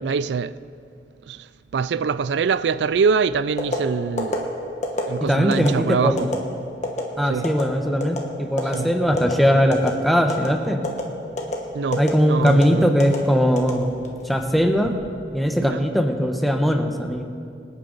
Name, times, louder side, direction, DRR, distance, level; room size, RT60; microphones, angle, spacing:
voice 1, 0.0-0.5 1.3-1.5 1.7-4.5 5.1-6.3 7.2-7.5 8.7-8.9 11.7-12.9 15.6-15.8, right 5 dB, 75° right, 0.4 m, -24 dB
sound 1, 3.6-3.8 4.2-4.4 4.8-5.1 5.5-5.7 6.2-6.4 6.8-7.0 7.4-7.6 8.0-8.2 8.6-8.8 9.2-9.3 9.7-10.0 10.3-10.5 10.8-11.0 11.4-11.6 11.9-12.1 12.5-12.6 13.0-13.2 13.6-14.2 14.6-14.9, left 2 dB, 45° left, 1.6 m, -25 dB
voice 2, 5.2-6.4 7.2-10.8 12.0-13.9 14.2-14.9 15.3-17.2, equal, ahead, 1.0 m, -20 dB
25.0 x 8.8 x 4.0 m
head